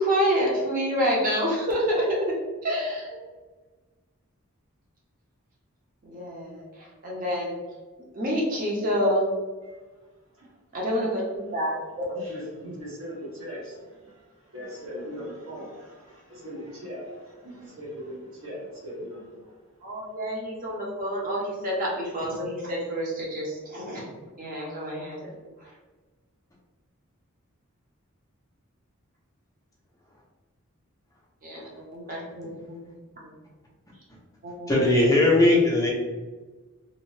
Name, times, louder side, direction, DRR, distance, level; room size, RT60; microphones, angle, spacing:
voice 1, 0.0-2.4 2.6-3.1 6.0-7.6 8.1-9.2 10.7-12.2 19.8-24.1 24.4-25.3 31.4-32.8 33.1-33.4 34.4-35.0, equal, 40° right, -3 dB, 0.7 m, -28 dB
voice 2, 12.1-19.6, equal, 70° right, -6 dB, 1.1 m, -40 dB
voice 3, 34.7-35.9, left 2 dB, 15° left, -4 dB, 0.4 m, -19 dB
2.7 x 2.0 x 3.0 m, 1.3 s
head